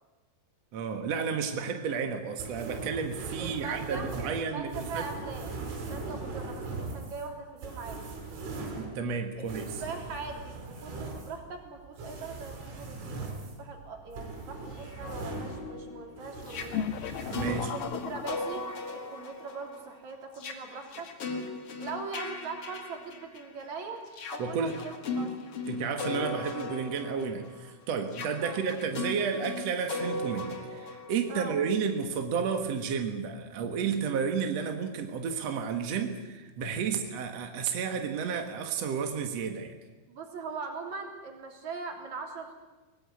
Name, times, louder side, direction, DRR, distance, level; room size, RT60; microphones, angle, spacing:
voice 1, 0.7-5.0 8.7-9.8 17.3-17.7 24.4-24.8 25.7-39.7, right 6 dB, 65° right, 5 dB, 1.6 m, -32 dB
sound 1, 2.4-15.9 16.2-17.7, right 3 dB, 90° right, 7.5 m, -40 dB
voice 2, 3.4-8.0 9.4-9.5 9.8-13.3 13.6-16.9 17.7-21.1 21.8-24.0 24.3-25.3 28.4-28.6 31.3-31.6 36.8-37.0 40.1-42.5, right 4 dB, 40° right, 3 dB, 4.1 m, -41 dB
sound 2, 14.8-23.6 24.1-31.9, left 3 dB, 45° left, 2.1 m, -38 dB
sound 3, 16.7-19.1, left 9 dB, 70° left, 2.3 m, -36 dB
22.5 x 19.5 x 9.7 m, 1.1 s
omnidirectional pair, 5.5 m